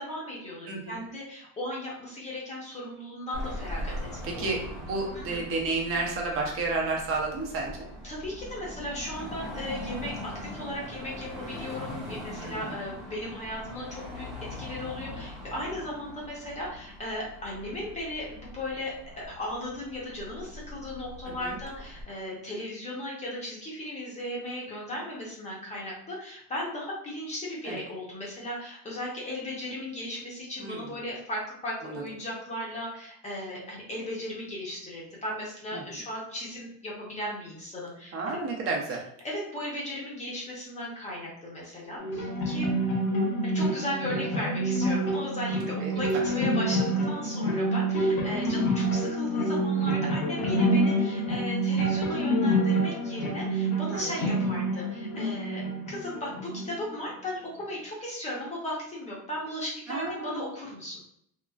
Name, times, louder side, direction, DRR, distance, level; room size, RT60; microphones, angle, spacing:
voice 1, 0.0-4.4 5.1-5.4 8.0-14.3 14.6-38.4 39.2-42.7 43.4-61.0, left 1 dB, 15° left, -4 dB, 0.7 m, -36 dB
voice 2, 0.7-1.0 4.2-4.6 4.8-7.8 12.4-12.8 21.3-21.6 27.6-27.8 30.6-30.9 31.8-32.0 35.7-36.0 38.1-39.0 45.8-46.2 53.9-54.3 59.9-60.5, right 3 dB, 35° right, -1 dB, 0.7 m, -32 dB
Car passing by / Traffic noise roadway noise / Engine, 3.3-22.0, left 1 dB, ahead, 0.3 m, -41 dB
tapehead dulcimer, 42.0-56.9, right 1 dB, 80° left, 1.0 m, -27 dB
2.8 x 2.5 x 2.3 m, 0.71 s
cardioid pair, 145°, 42 cm